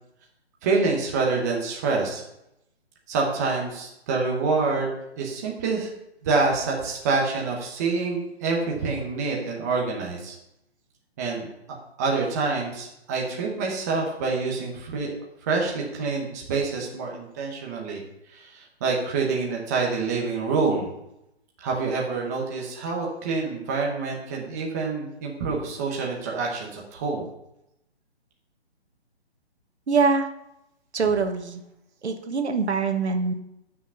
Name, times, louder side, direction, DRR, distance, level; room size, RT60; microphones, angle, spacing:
voice 1, 0.6-2.2 3.1-5.9 6.2-10.3 11.2-11.5 12.0-15.1 15.4-18.0 18.3-21.0 21.6-27.3, right 4 dB, 15° right, -1 dB, 1.0 m, -26 dB
voice 2, 29.9-30.3 30.9-31.6 32.0-33.3, right 4 dB, 80° right, 6 dB, 1.5 m, -23 dB
9.2 x 6.2 x 5.6 m, 0.83 s
hypercardioid pair, 165°, 33 cm